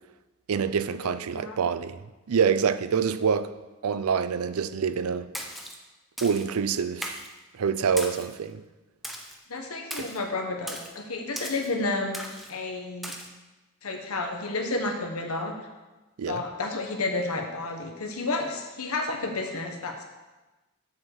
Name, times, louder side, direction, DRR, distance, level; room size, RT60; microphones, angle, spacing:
voice 1, 0.5-3.5 3.8-5.3 6.2-7.2 7.5-8.6 10.0-10.1 16.2-16.4, right 6 dB, 85° right, 0.5 m, -26 dB
voice 2, 1.0-1.6 9.5-13.1 13.8-15.6 16.3-20.0, left 3 dB, 85° left, 1.3 m, -31 dB
Splash splatter, 5.3-5.8 6.2-6.5 7.0-7.3 8.0-8.3 9.0-9.4 9.9-10.2 10.7-10.9 11.4-11.7 12.1-12.5 13.0-13.3, equal, ahead, 0.7 m, -37 dB
7.6 x 5.5 x 7.1 m
head